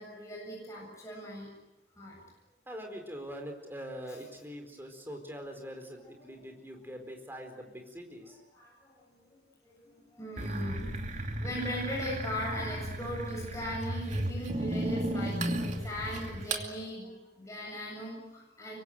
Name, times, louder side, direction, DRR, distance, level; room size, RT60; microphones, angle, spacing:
voice 1, 0.0-1.5 2.0-2.2 4.1-4.2 5.8-6.4 8.2-18.8, equal, 15° left, -3 dB, 7.7 m, -40 dB
voice 2, 2.7-8.3, equal, 10° right, 4 dB, 4.4 m, -43 dB
sound 1, 10.4-16.7, right 1 dB, 45° right, 2.6 m, -34 dB
25.5 x 23.5 x 9.2 m, 0.99 s
head